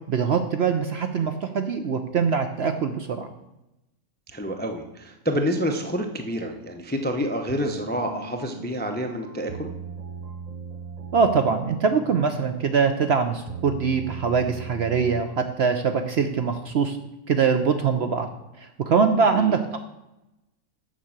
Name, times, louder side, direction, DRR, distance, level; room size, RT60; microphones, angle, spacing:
voice 1, 0.1-3.3 11.1-17.0 17.3-18.3 18.6-19.6, right 5 dB, 55° right, 7 dB, 0.7 m, -23 dB
voice 2, 4.3-9.7 19.3-19.6, equal, 10° left, 5 dB, 0.4 m, -28 dB
sound 1, 7.5-15.6, right 4 dB, 80° right, 0.3 m, -39 dB
7.4 x 6.5 x 7.3 m, 0.93 s
omnidirectional pair, 1.6 m